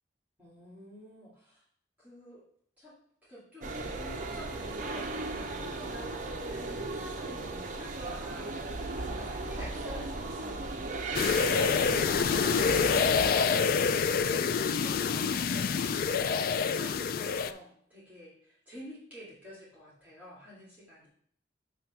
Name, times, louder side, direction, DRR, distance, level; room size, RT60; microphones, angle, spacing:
voice 1, 0.4-1.6 2.0-2.4 2.8-2.9 3.2-21.1, left 1 dB, 10° right, -10 dB, 2.4 m, -48 dB
sound 1, 3.6-13.3, right 3 dB, 45° right, 0.6 m, -36 dB
sound 2, 11.1-17.5, left 6 dB, 50° left, 0.3 m, -27 dB
6.7 x 3.3 x 6.0 m, 0.63 s
head